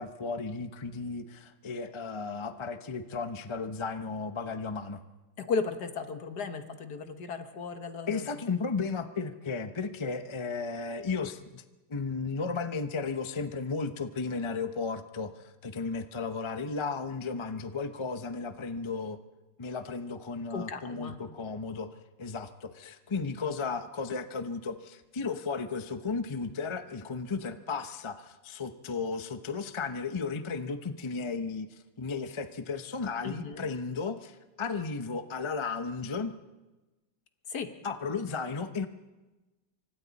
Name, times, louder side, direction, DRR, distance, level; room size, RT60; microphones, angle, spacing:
voice 1, 0.0-5.0 8.1-11.4 11.9-15.3 15.6-19.2 19.6-21.9 22.2-31.7 32.0-34.3 34.6-36.3 37.8-38.9, left 4 dB, 30° left, 9 dB, 0.6 m, -34 dB
voice 2, 5.4-8.2 20.5-21.2 33.2-33.6 37.5-37.7, left 5 dB, 60° left, 8 dB, 1.8 m, -35 dB
29.0 x 25.0 x 4.1 m, 1.1 s
omnidirectional pair, 2.0 m